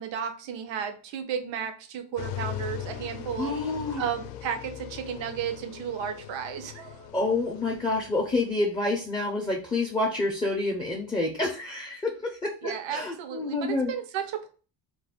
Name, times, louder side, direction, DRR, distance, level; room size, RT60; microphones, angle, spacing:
voice 1, 0.0-3.5 4.0-7.1 12.6-14.5, right 8 dB, 85° right, 7 dB, 0.7 m, -33 dB
sound 1, 2.2-8.5, left 11 dB, 75° left, 0.5 m, -40 dB
voice 2, 3.4-4.0 7.1-13.9, left 2 dB, 10° left, 0 dB, 0.3 m, -28 dB
2.4 x 2.3 x 3.4 m, 0.38 s
cardioid pair, 130°, 44 cm